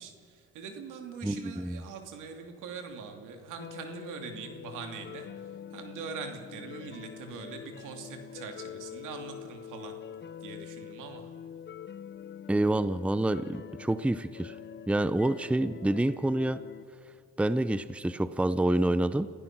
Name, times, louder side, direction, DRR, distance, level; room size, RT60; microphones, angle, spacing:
voice 1, 0.0-5.3 5.7-9.9 10.4-11.3, right 5 dB, 90° right, 4 dB, 2.8 m, -42 dB
voice 2, 1.2-1.8 12.5-14.6 14.9-16.6 17.4-19.3, right 1 dB, 5° right, 14 dB, 0.6 m, -27 dB
sound 1, 3.6-16.8, left 8 dB, 35° left, 0.6 m, -45 dB
29.0 x 15.5 x 6.1 m, 2.2 s
cardioid pair, 90°, 30 cm